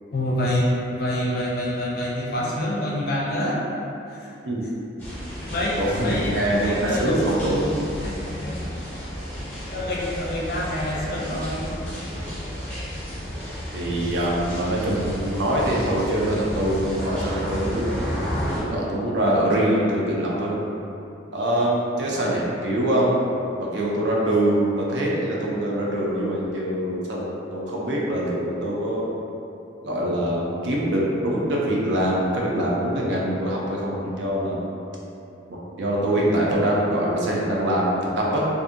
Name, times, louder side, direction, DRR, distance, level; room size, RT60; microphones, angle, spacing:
voice 1, 0.1-3.7 4.1-4.3 5.5-7.5 8.0-8.7 9.4-11.8, left 1 dB, 50° left, -5 dB, 0.5 m, -27 dB
sound 1, 5.0-18.6, equal, 10° left, 0.7 m, -32 dB
voice 2, 5.8-7.8 13.7-18.1 18.5-20.6 21.3-23.2 23.6-29.1 29.8-34.6 35.5-38.5, right 1 dB, 65° right, -4 dB, 0.5 m, -24 dB
2.6 x 2.6 x 2.5 m, 2.8 s
head